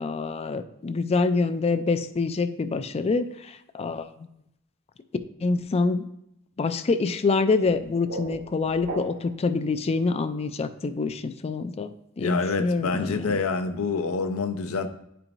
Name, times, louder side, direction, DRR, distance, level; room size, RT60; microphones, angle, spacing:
voice 1, 0.0-4.3 5.4-6.0 6.6-13.4, left 4 dB, 30° left, 0.3 m, -26 dB
sound 1, 7.6-9.5, right 2 dB, 65° right, 0.9 m, -38 dB
voice 2, 12.2-14.9, left 4 dB, 80° left, 0.6 m, -27 dB
10.5 x 4.5 x 2.6 m
head